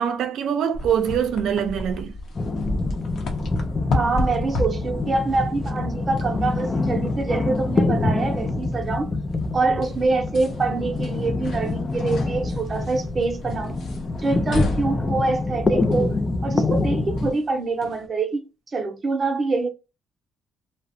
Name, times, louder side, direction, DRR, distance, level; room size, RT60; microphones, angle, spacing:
voice 1, 0.0-2.1, right 8 dB, 75° right, 0.4 m, -23 dB
sound 1, 0.7-18.1, left 2 dB, 65° left, 0.7 m, -34 dB
sound 2, 2.4-17.3, left 2 dB, 30° left, 0.4 m, -26 dB
voice 2, 3.9-9.2 9.5-13.8 14.1-18.4 18.7-19.7, right 3 dB, 35° right, 0.6 m, -25 dB
2.4 x 2.1 x 2.6 m
cardioid pair, 90°, 0 cm